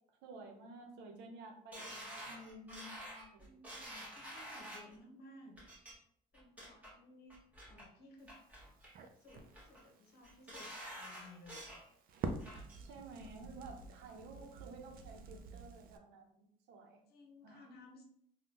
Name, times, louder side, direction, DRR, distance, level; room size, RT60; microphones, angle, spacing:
voice 1, 0.2-3.5 12.8-17.0 17.4-17.7, right 2 dB, 90° right, 2 dB, 0.7 m, -53 dB
sound 1, 1.7-5.0 5.6-5.9 6.3-6.9 7.3-7.8 8.3-8.9 9.3-9.8 10.2-11.8 12.2-12.8 13.2-13.3, equal, 10° right, 1.0 m, -49 dB
voice 2, 3.4-5.6 6.3-7.4 7.6-8.3 9.2-11.7 17.1-18.0, left 1 dB, 70° left, 2 dB, 0.9 m, -58 dB
Crackle, 8.2-16.0, right 4 dB, 60° right, 0.4 m, -48 dB
3.5 x 2.3 x 2.8 m, 0.67 s
cardioid pair, 110°, 17 cm